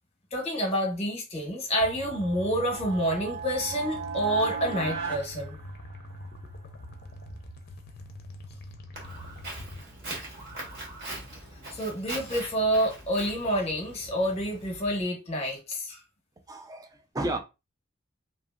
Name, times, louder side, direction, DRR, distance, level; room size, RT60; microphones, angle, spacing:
voice 1, 0.3-5.6 11.7-16.0, equal, 30° left, 0.9 m, -28 dB
sound 1, 1.8-9.8, left 1 dB, 50° left, 0.5 m, -44 dB
sound 2, 2.0-6.3, right 6 dB, 80° right, 1.2 m, -37 dB
Walk footsteps, 8.9-15.0, right 1 dB, 55° right, 1.1 m, -41 dB
voice 2, 16.5-17.4, right 2 dB, 15° right, 0.4 m, -32 dB
2.7 x 2.6 x 2.3 m
head